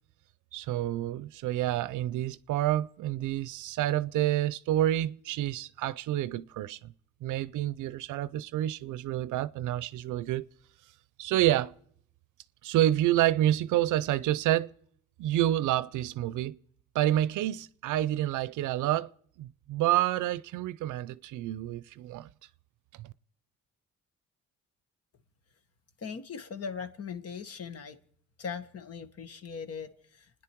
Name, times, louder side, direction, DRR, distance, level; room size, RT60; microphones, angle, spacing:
voice 1, 0.5-6.9 7.2-10.5 11.2-11.7 12.6-14.7 15.2-16.6 16.9-19.1 19.4-22.3 23.0-23.1, right 13 dB, 80° right, 0.6 m, -28 dB
voice 2, 26.0-28.0 28.4-30.3, left 6 dB, 55° left, 1.5 m, -39 dB
29.5 x 10.0 x 4.6 m
cardioid pair, 90°, 30 cm